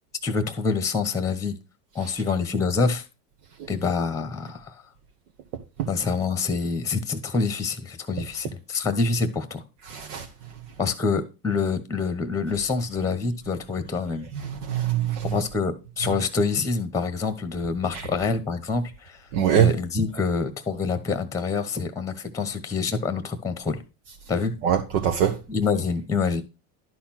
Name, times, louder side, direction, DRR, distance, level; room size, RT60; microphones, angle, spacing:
voice 1, 0.2-1.5 1.9-3.0 3.7-4.8 5.9-9.6 10.8-14.3 15.2-19.2 19.5-23.8 24.3-24.5 25.5-26.4, left 4 dB, 5° left, 1.1 m, -26 dB
voice 2, 9.9-10.2 14.7-15.3 19.3-19.7 24.6-25.3, right 9 dB, 70° right, 1.5 m, -22 dB
11.5 x 4.3 x 5.8 m
supercardioid pair, 120°, 46 cm